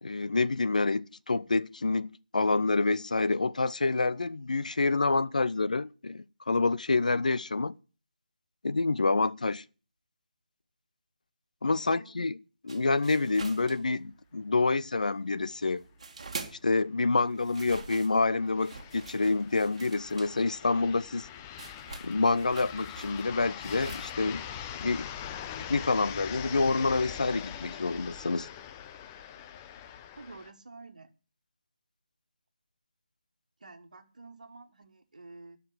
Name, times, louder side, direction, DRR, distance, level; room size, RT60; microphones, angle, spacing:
voice 1, 0.0-7.7 8.6-9.6 11.6-12.4 12.6-15.8 16.6-21.3 22.0-24.4 24.8-25.1 25.7-28.5, left 3 dB, 60° left, 0.6 m, -27 dB
voice 2, 11.7-12.2 30.2-31.1 33.6-35.6, right 3 dB, 60° right, 1.8 m, -50 dB
sound 1, 12.7-14.5 14.7-16.8 17.1-24.1, right 4 dB, 45° right, 2.0 m, -45 dB
sound 2, 16.5-16.6 16.8-16.9 17.7-30.5, left 9 dB, 15° left, 0.5 m, -42 dB
12.0 x 5.9 x 7.9 m
figure-of-eight pair, 155°, 5 cm